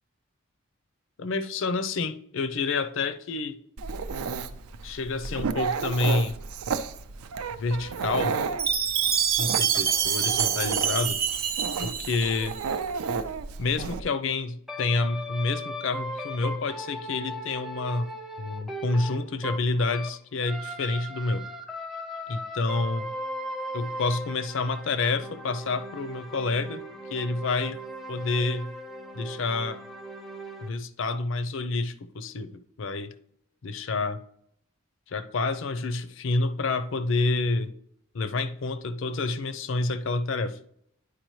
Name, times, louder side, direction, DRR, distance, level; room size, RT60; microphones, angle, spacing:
voice 1, 1.2-3.6 4.8-6.4 7.6-8.4 9.4-11.2 11.8-12.5 13.6-18.1 18.4-21.5 22.3-23.1 23.7-26.8 27.1-27.8 28.1-28.7 29.1-29.8 30.6-33.1 33.6-34.2 35.1-37.7 38.1-40.6, left 3 dB, 60° left, 12 dB, 0.5 m, -28 dB
Dog, 3.8-14.0, right 5 dB, 90° right, 0.5 m, -32 dB
Chime, 8.6-12.7, right 8 dB, 45° right, 0.6 m, -26 dB
sound 1, 14.7-20.2 20.4-30.7, equal, ahead, 0.4 m, -38 dB
10.0 x 4.8 x 3.1 m, 0.70 s
head